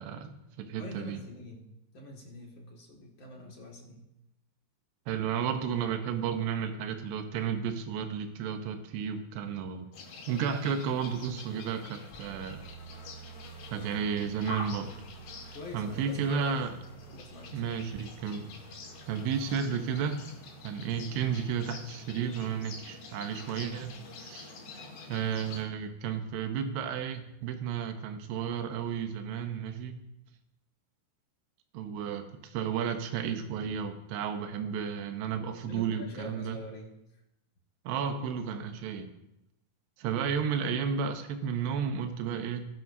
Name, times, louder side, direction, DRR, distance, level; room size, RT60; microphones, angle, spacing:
voice 1, 0.0-1.2 5.1-9.9 10.3-12.6 13.7-14.9 15.7-16.8 17.5-18.5 19.1-20.2 20.6-24.5 25.1-30.0 31.7-36.6 37.8-39.1 40.0-42.6, right 7 dB, 80° right, 6 dB, 3.1 m, -33 dB
voice 2, 0.8-4.0 15.5-16.5 17.1-17.8 35.6-37.2, left 2 dB, 40° left, -2 dB, 2.2 m, -45 dB
sound 1, 9.9-25.6, left 3 dB, 75° left, 4.0 m, -47 dB
sound 2, 12.1-28.5, right 8 dB, 10° left, 5.2 m, -53 dB
19.0 x 11.0 x 2.7 m, 0.87 s
omnidirectional pair, 4.8 m